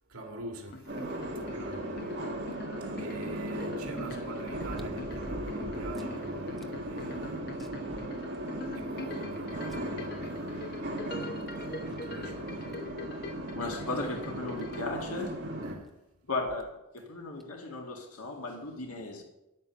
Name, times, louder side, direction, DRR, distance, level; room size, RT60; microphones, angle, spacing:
voice 1, 0.1-2.1 2.8-8.1 8.6-11.0 11.8-12.9 15.6-16.0, right 1 dB, 85° right, 2.0 m, -44 dB
sound 1, 0.7-14.8, left 3 dB, 45° left, 0.8 m, -45 dB
sound 2, 0.9-15.8, right 1 dB, 50° right, 1.5 m, -37 dB
sound 3, 2.5-2.6 4.5-6.2 6.6-6.7 7.1-7.2 7.6-8.7 9.7-9.8 11.2-11.3 11.9-12.0 12.7-12.9 14.3-14.4 14.6-14.7 16.4-16.7 17.4-17.5, equal, ahead, 0.6 m, -45 dB
voice 2, 13.6-15.4 16.3-19.2, left 2 dB, 90° left, 1.9 m, -36 dB
10.0 x 8.8 x 6.4 m
head